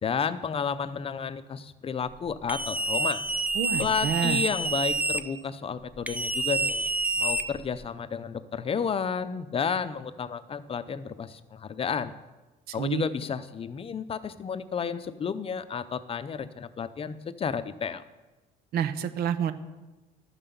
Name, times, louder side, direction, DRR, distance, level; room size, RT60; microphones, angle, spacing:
voice 1, 0.0-3.2 3.8-12.1 12.7-18.0, left 6 dB, 35° left, 13 dB, 0.6 m, -32 dB
sound 1, 2.5-5.2 6.1-7.9, right 2 dB, 10° right, 0.7 m, -28 dB
voice 2, 3.5-4.4 12.7-13.0 18.7-19.5, right 8 dB, 70° right, 12 dB, 0.9 m, -28 dB
12.5 x 5.7 x 6.9 m, 1.1 s
cardioid pair, 110°, 17 cm